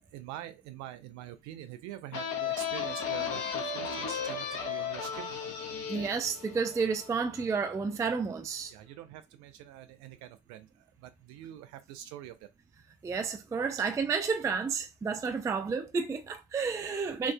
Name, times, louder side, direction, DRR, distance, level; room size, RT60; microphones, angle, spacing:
voice 1, 0.1-5.3 8.7-10.7 11.0-12.5, right 12 dB, 50° right, 0.6 m, -45 dB
sound 1, 2.1-7.6, left 6 dB, 50° left, 0.9 m, -35 dB
voice 2, 5.9-8.7 13.0-17.3, right 5 dB, 10° right, 0.4 m, -31 dB
4.7 x 2.4 x 2.2 m
figure-of-eight pair, 55°, 36 cm